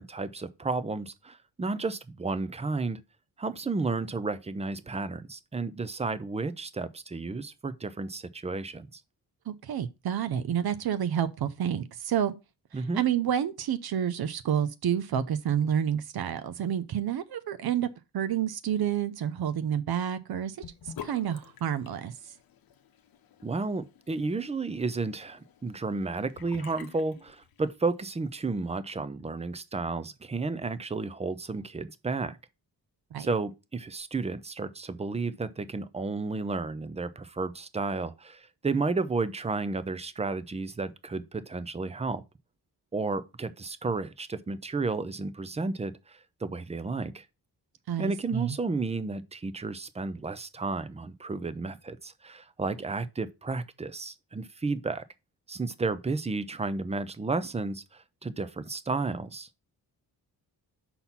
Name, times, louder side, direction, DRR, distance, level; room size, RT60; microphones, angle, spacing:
voice 1, 0.0-3.0 3.4-9.0 12.7-13.0 23.4-32.4 33.2-42.2 42.9-47.2 48.0-55.0 55.5-59.5, right 3 dB, 15° right, 0.5 m, -32 dB
voice 2, 9.5-12.3 12.7-17.9 18.1-20.6 20.8-22.3 33.1-33.3 47.9-48.6, right 9 dB, 65° right, 0.7 m, -29 dB
Sink (filling or washing) / Bathtub (filling or washing), 20.6-27.9, left 8 dB, 60° left, 0.9 m, -49 dB
5.9 x 4.2 x 5.5 m
cardioid pair, 115°, 40 cm